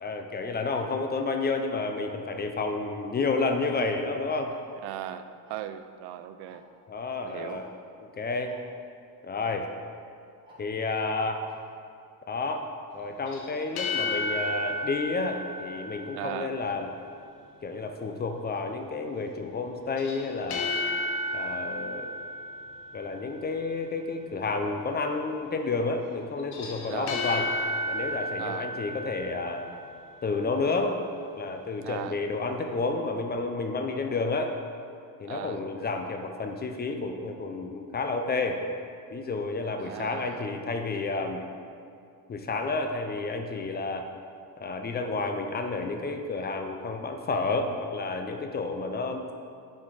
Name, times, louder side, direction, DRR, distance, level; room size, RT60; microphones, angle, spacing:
voice 1, 0.0-4.6 6.9-7.7 8.2-8.5 9.2-9.7 10.6-11.4 12.3-12.7 12.9-16.9 17.6-20.7 21.3-22.1 22.9-27.5 27.9-29.7 30.2-31.0 31.4-34.5 35.2-38.6 39.1-41.4 42.3-44.1 44.6-49.3, left 3 dB, 25° left, 5 dB, 0.5 m, -30 dB
Tick-tock, 3.5-3.6 4.5-4.7 5.5-5.7 6.5-6.6 6.8-6.9 7.5-7.6 8.5-8.6 9.5-9.6 10.5-10.6 11.5-11.6 12.5-12.6, equal, 10° right, 1.8 m, -51 dB
voice 2, 4.8-6.7 7.2-7.6 16.1-16.6 26.9-27.2 28.4-28.7 31.8-32.2 35.3-35.6 39.8-40.5, right 12 dB, 70° right, 11 dB, 0.5 m, -38 dB
sound 1, 13.3-16.6 20.0-23.3 26.4-30.0, left 1 dB, 60° left, 1.1 m, -33 dB
7.2 x 4.4 x 4.8 m, 2.4 s
cardioid pair, 110°, 41 cm